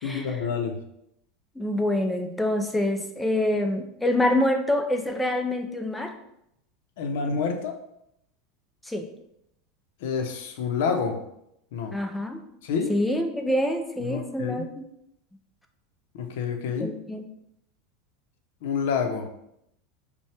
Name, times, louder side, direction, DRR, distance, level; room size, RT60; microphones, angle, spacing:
voice 1, 0.0-0.8 7.0-7.8 10.0-11.2 11.7-12.0 12.6-13.0 14.0-14.6 16.1-16.9 18.6-19.3, left 6 dB, 75° left, 4 dB, 0.7 m, -28 dB
voice 2, 1.6-6.2 8.8-9.1 11.9-12.4 12.9-14.8 16.8-17.2, left 1 dB, 5° left, 5 dB, 0.4 m, -26 dB
5.5 x 2.2 x 3.4 m, 0.79 s
supercardioid pair, 145°, 0 cm